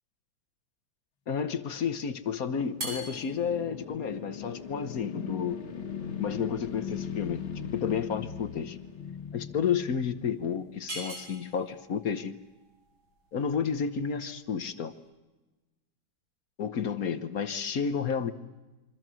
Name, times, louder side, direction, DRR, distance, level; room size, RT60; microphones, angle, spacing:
voice 1, 1.3-5.6 6.2-7.4 7.7-8.8 9.3-12.3 13.3-14.9 16.6-18.3, left 7 dB, 55° left, 12 dB, 1.4 m, -31 dB
sound 1, 1.7-11.0, left 7 dB, 85° left, 2.4 m, -39 dB
sound 2, 2.7-15.1, right 1 dB, 85° right, 7.0 m, -46 dB
27.5 x 24.5 x 6.3 m, 1.1 s
omnidirectional pair, 2.1 m